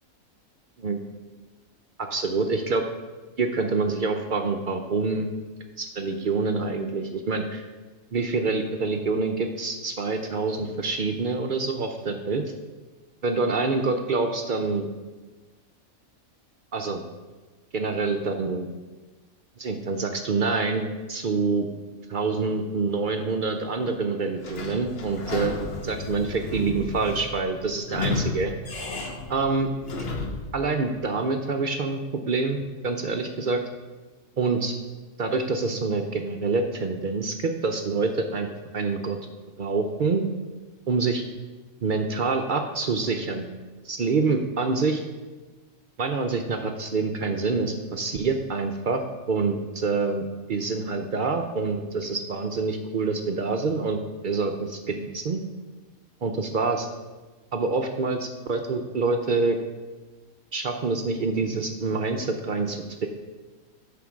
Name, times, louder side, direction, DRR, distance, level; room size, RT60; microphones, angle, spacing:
voice 1, 2.0-2.8 3.4-5.3 5.8-7.6 8.1-12.4 13.2-14.9 16.7-17.0 17.7-18.7 19.6-21.7 22.1-28.5 29.3-29.7 30.5-32.0 32.3-33.6 34.4-34.7 35.2-38.5 38.7-39.2 39.6-40.2 40.9-41.2 41.8-43.5 43.8-45.0 46.0-49.0 49.3-54.0 54.2-55.4 56.2-56.9 57.5-59.6 60.5-63.1, right 4 dB, 60° right, 5 dB, 0.5 m, -26 dB
Sliding door / Squeak, 24.4-30.5, left 3 dB, 50° left, 1.1 m, -33 dB
9.4 x 3.8 x 6.2 m, 1.3 s
omnidirectional pair, 1.5 m